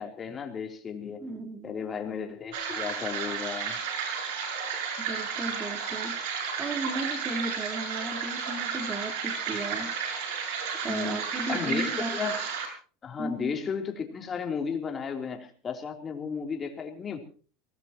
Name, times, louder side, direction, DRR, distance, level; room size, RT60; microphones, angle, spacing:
voice 1, 0.0-1.2 1.6-3.8 10.9-11.2 11.5-12.4 13.0-17.2, left 6 dB, 25° left, 3 dB, 3.4 m, -34 dB
voice 2, 1.2-1.7 5.0-6.2 6.6-10.4 10.8-12.2 13.2-13.5, right 2 dB, 20° right, 4 dB, 3.9 m, -35 dB
sound 1, 2.5-12.7, right 6 dB, 75° right, 7.1 m, -32 dB
23.5 x 19.0 x 3.0 m, 0.41 s
supercardioid pair, 125°, 0 cm